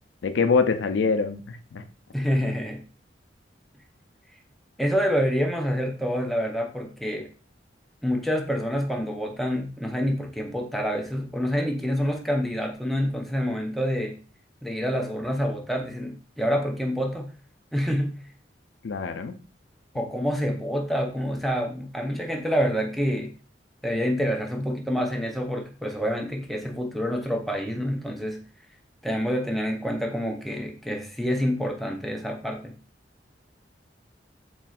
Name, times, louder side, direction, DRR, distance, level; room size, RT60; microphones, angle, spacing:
voice 1, 0.2-1.8 18.8-19.3, left 4 dB, 85° left, 9 dB, 0.4 m, -24 dB
voice 2, 2.1-2.8 4.8-7.3 8.0-14.2 14.6-17.3 17.7-18.2 19.9-23.3 23.8-28.4 29.0-32.8, equal, ahead, 1 dB, 0.4 m, -27 dB
4.2 x 3.1 x 2.3 m, 0.37 s
head